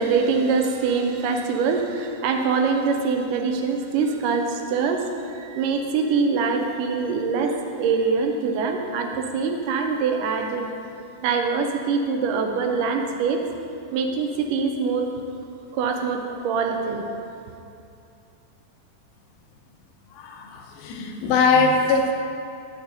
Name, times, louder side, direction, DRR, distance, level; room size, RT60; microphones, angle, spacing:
voice 1, 0.0-10.7 11.2-13.4 13.9-15.1 15.7-17.1, right 5 dB, 85° right, 3 dB, 2.2 m, -24 dB
voice 2, 20.1-22.1, left 4 dB, 80° left, 3 dB, 2.1 m, -21 dB
8.8 x 6.7 x 2.7 m, 2.6 s
omnidirectional pair, 3.8 m